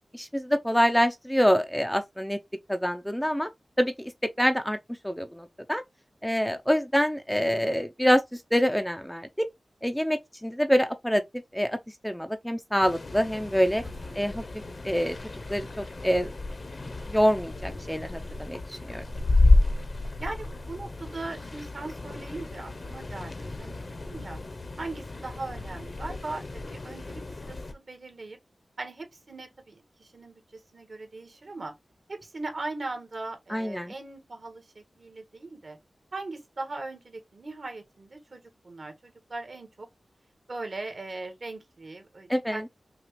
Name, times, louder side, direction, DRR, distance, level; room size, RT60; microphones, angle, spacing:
voice 1, 0.1-2.4 2.7-3.5 3.8-4.8 5.0-5.8 6.2-9.5 9.8-11.2 11.5-11.8 12.0-13.8 14.1-14.4 14.8-15.2 15.5-16.3 17.1-19.0 33.5-33.9 42.3-42.7, equal, 5° left, 0.5 m, -26 dB
sound 1, 12.8-27.7, left 2 dB, 50° left, 0.8 m, -30 dB
voice 2, 13.8-14.3 20.2-24.4 24.8-27.1 27.4-28.4 28.8-31.7 32.1-35.8 36.1-39.9 40.5-42.7, right 2 dB, 55° right, 1.6 m, -39 dB
5.8 x 2.4 x 3.2 m
wide cardioid pair, 75°, 0 cm